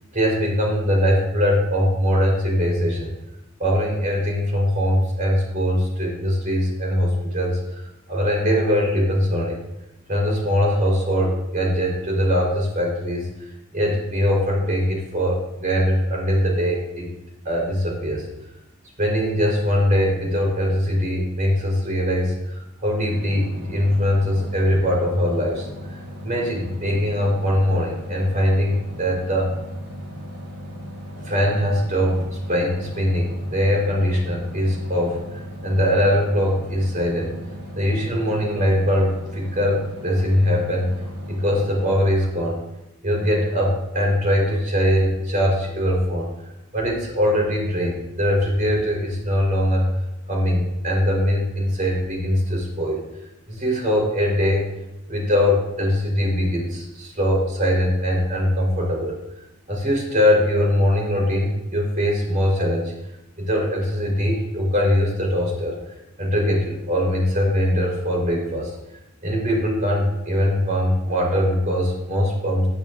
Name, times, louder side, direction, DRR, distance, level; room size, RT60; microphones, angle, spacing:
voice 1, 0.1-3.1 3.6-7.8 8.1-9.6 10.1-13.3 13.7-17.1 17.4-18.3 19.0-29.5 31.2-32.2 32.5-35.2 35.6-37.3 37.7-40.9 41.3-42.6 43.0-46.3 46.7-49.9 50.3-53.0 53.5-54.6 55.1-59.2 59.7-62.9 63.4-65.8 66.2-68.7 69.2-72.7, equal, 40° right, -2 dB, 4.3 m, -21 dB
sound 1, 23.1-42.0, equal, 80° right, 4.6 m, -37 dB
14.5 x 11.0 x 2.7 m, 0.89 s
head